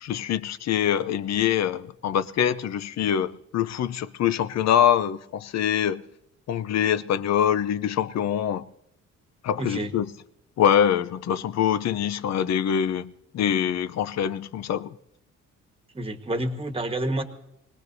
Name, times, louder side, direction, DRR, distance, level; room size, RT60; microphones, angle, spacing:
voice 1, 0.0-6.0 6.5-8.6 9.4-10.1 10.6-14.9, left 9 dB, 60° left, 0.7 m, -24 dB
voice 2, 9.6-9.9 15.9-17.2, right 1 dB, 20° right, 1.4 m, -28 dB
24.5 x 18.5 x 2.7 m
cardioid pair, 90°, 30 cm